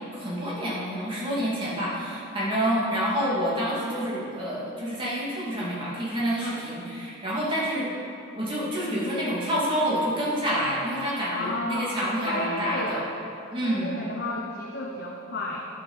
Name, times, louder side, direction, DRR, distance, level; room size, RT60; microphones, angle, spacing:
voice 1, 0.1-7.9 8.4-13.0 13.5-14.0, equal, 25° right, -7 dB, 2.6 m, -28 dB
voice 2, 11.3-13.1 13.6-15.7, left 2 dB, 50° left, -3 dB, 1.0 m, -32 dB
10.5 x 7.5 x 5.6 m, 2.6 s
head